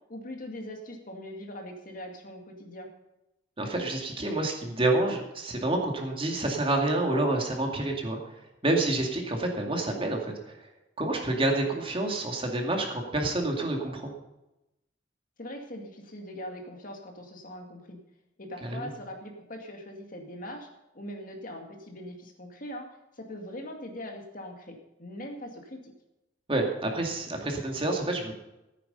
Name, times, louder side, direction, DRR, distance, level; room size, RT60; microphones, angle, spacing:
voice 1, 0.1-2.9 15.4-18.0 18.4-20.7 20.9-22.9 23.1-25.9, left 1 dB, 50° left, 3 dB, 2.3 m, -41 dB
voice 2, 3.6-8.2 8.6-10.3 11.0-14.1 18.6-18.9 26.5-28.3, right 2 dB, 30° right, 2 dB, 2.2 m, -28 dB
14.5 x 9.4 x 5.5 m, 0.94 s
head